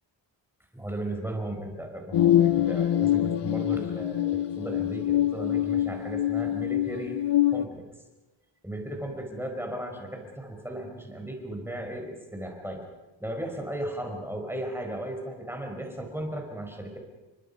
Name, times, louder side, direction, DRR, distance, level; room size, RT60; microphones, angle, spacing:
voice 1, 0.7-7.2 7.5-7.8 8.6-12.8 13.2-17.0, right 1 dB, 5° right, 2 dB, 4.8 m, -36 dB
sound 1, 2.1-7.6, left 12 dB, 60° left, 0.7 m, -25 dB
30.0 x 25.0 x 5.5 m, 1.1 s
wide cardioid pair, 160°, 46 cm